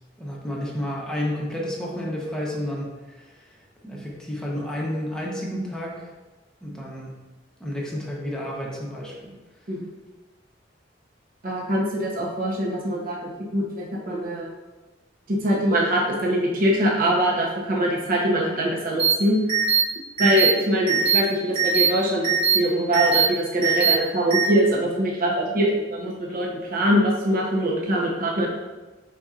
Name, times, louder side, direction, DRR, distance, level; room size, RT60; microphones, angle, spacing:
voice 1, 0.2-3.5 3.8-6.1 6.6-7.2 7.6-9.3, equal, 5° left, -4 dB, 0.8 m, -31 dB
voice 2, 11.4-14.5 15.3-19.4 20.2-28.5, equal, 50° right, -2 dB, 0.8 m, -23 dB
sound 1, 19.0-19.1 19.5-19.8 20.2-20.5 20.9-21.2 21.6-21.9 22.2-22.6 22.9-23.3 23.6-23.9 24.3-24.4, right 7 dB, 30° right, 1.3 m, -20 dB
5.1 x 4.2 x 2.4 m, 1.2 s
head